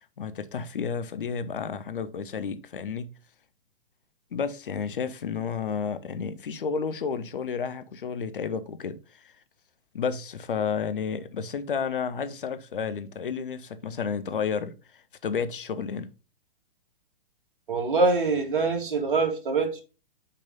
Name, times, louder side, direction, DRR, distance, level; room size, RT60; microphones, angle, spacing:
voice 1, 0.0-3.1 4.3-9.4 9.9-16.1, left 6 dB, 60° left, 0.8 m, -31 dB
voice 2, 17.7-19.8, right 4 dB, 55° right, 2.0 m, -24 dB
5.6 x 5.1 x 3.8 m
figure-of-eight pair, 120°, 30 cm